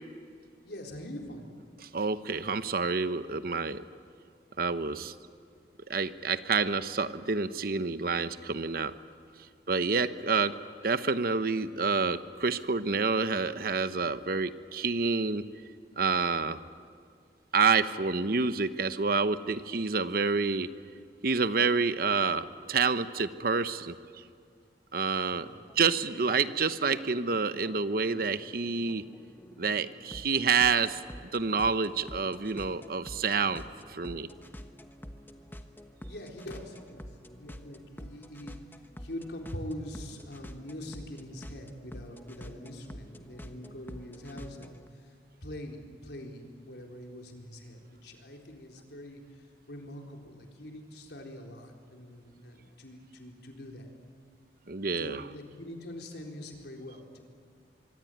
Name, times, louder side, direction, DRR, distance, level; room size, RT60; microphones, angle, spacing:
voice 1, 0.6-1.5 25.4-25.6 36.0-37.1 37.4-38.6 39.0-44.8 45.4-49.2 49.7-53.9 55.0-57.2, left 1 dB, 65° left, 2 dB, 4.1 m, -43 dB
voice 2, 1.8-3.8 4.6-5.1 5.9-8.9 9.7-10.6 10.8-15.4 16.0-16.6 17.5-20.7 21.2-24.0 24.9-25.5 25.8-29.0 29.6-31.0 31.3-33.6 33.9-34.3 54.7-55.3, right 4 dB, 55° right, 12 dB, 0.9 m, -28 dB
sound 1, 25.3-44.9, equal, 10° left, 1.1 m, -48 dB
25.5 x 24.0 x 9.3 m, 2.2 s
head